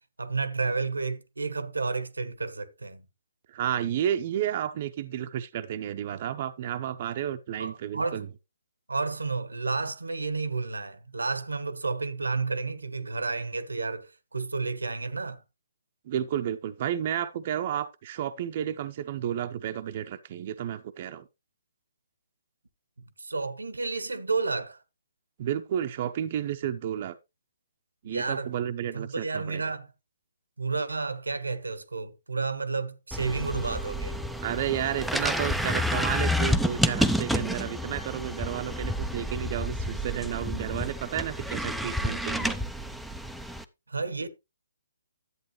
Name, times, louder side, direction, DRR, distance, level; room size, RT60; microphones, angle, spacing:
voice 1, 0.2-3.0 7.6-8.2 8.9-15.4 23.2-24.8 28.0-28.5 28.9-29.9 30.6-34.2 43.9-44.3, right 4 dB, 85° right, 1.0 m, -31 dB
voice 2, 3.5-8.3 16.1-21.3 25.4-27.2 28.0-29.6 34.4-42.6, right 10 dB, 40° right, 0.7 m, -32 dB
sound 1, 33.1-43.6, equal, ahead, 0.5 m, -29 dB
11.0 x 8.2 x 3.1 m
figure-of-eight pair, 140°, 0 cm